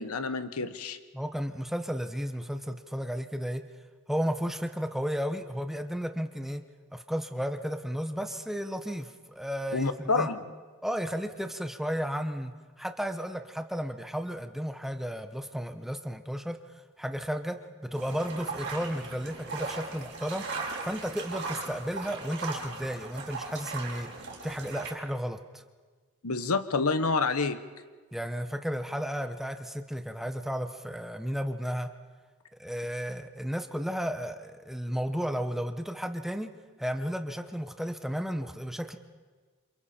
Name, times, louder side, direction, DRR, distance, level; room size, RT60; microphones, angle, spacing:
voice 1, 0.0-1.0 9.7-10.4 26.2-27.6, left 4 dB, 80° left, 11 dB, 1.1 m, -28 dB
voice 2, 1.1-3.6 4.1-6.6 6.9-10.3 10.8-12.5 12.8-16.6 17.0-17.6 17.9-20.5 20.8-24.1 24.4-25.6 28.1-31.9 32.6-36.5 36.8-39.0, equal, ahead, 7 dB, 0.9 m, -33 dB
sound 1, 17.9-24.9, right 3 dB, 50° right, 4.9 m, -38 dB
29.0 x 27.5 x 4.4 m, 1.5 s
head